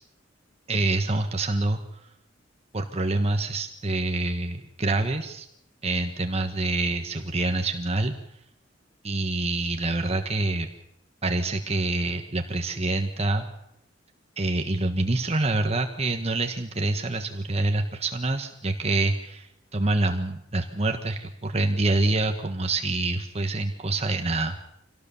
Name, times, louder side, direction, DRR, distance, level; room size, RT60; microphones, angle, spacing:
voice 1, 0.7-1.8 2.7-5.5 5.8-8.1 9.0-10.7 11.2-13.5 14.4-24.5, right 2 dB, 35° right, 5 dB, 1.3 m, -26 dB
25.5 x 18.0 x 7.0 m, 0.77 s
head